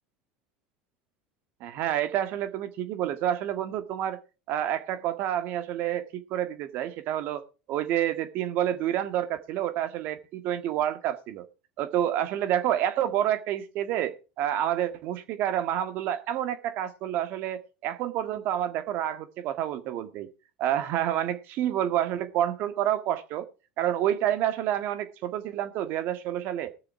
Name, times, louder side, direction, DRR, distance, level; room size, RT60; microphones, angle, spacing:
voice 1, 1.6-4.2 4.5-7.4 7.7-11.5 11.8-20.3 20.6-23.5 23.8-26.7, right 11 dB, 55° right, 1.7 m, -28 dB
19.0 x 6.8 x 4.8 m
hypercardioid pair, 90°, 4 cm